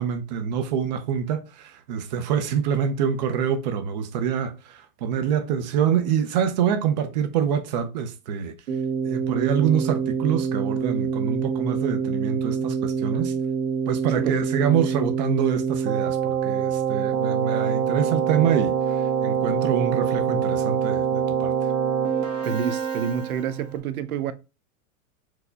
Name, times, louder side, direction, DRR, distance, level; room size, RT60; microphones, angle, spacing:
voice 1, 0.0-8.5 9.0-13.3 13.9-18.7 19.2-21.5, right 8 dB, 35° right, 0.4 m, -25 dB
Keyboard (musical), 8.7-23.7, right 7 dB, 65° right, 1.3 m, -25 dB
voice 2, 14.1-14.4 22.4-24.3, right 8 dB, 90° right, 0.7 m, -28 dB
4.6 x 2.2 x 3.8 m
supercardioid pair, 155°, 42 cm